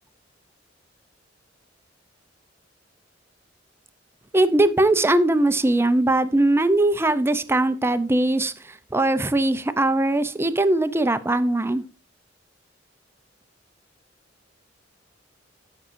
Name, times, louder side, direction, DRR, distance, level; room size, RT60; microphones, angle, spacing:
voice 1, 4.3-11.8, right 2 dB, 15° right, 0.6 m, -20 dB
13.5 x 6.2 x 2.6 m
head